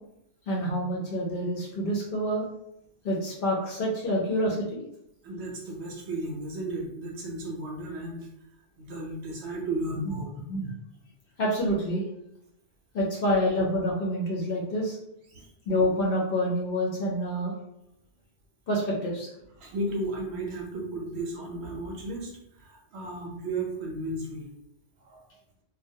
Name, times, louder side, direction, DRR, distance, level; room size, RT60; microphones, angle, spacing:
voice 1, 0.5-2.5 3.0-4.8 10.1-10.2 10.5-10.7 11.4-12.0 12.9-15.0 15.7-17.5 18.7-19.3, equal, 60° left, -3 dB, 0.7 m, -27 dB
voice 2, 5.2-8.3 8.8-10.3 15.3-15.5 19.6-24.5 25.0-25.2, right 2 dB, 65° right, -1 dB, 0.8 m, -34 dB
2.2 x 2.2 x 2.6 m, 0.79 s
omnidirectional pair, 1.3 m